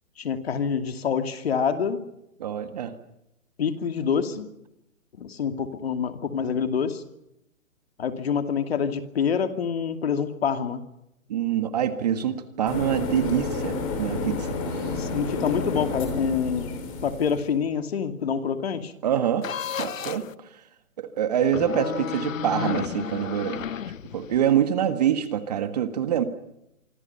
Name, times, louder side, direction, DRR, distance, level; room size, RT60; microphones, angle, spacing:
voice 1, 0.2-2.0 3.6-4.5 5.2-7.0 8.0-10.8 14.8-16.7 17.0-18.9, left 7 dB, 45° left, 8 dB, 2.6 m, -26 dB
voice 2, 2.4-2.9 11.3-14.9 19.0-19.4 19.8-20.2 21.0-23.6 24.1-26.2, right 10 dB, 30° right, 10 dB, 1.6 m, -25 dB
sound 1, 12.7-17.4, left 3 dB, 25° left, 5.2 m, -30 dB
sound 2, 19.4-20.3 21.4-24.5, left 8 dB, 65° left, 1.1 m, -32 dB
26.5 x 25.5 x 5.7 m, 0.84 s
hypercardioid pair, 165°, 41 cm